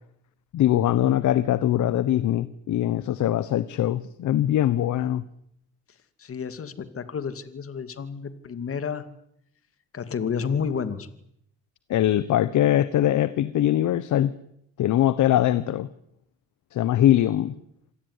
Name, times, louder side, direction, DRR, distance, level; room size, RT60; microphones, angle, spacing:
voice 1, 0.5-5.2 11.9-14.3 14.8-15.9 16.7-17.5, left 12 dB, 75° left, 15 dB, 1.2 m, -22 dB
voice 2, 6.2-9.1 9.9-11.1, left 6 dB, 45° left, 11 dB, 2.6 m, -30 dB
27.0 x 18.5 x 9.8 m, 0.73 s
cardioid pair, 90°, 30 cm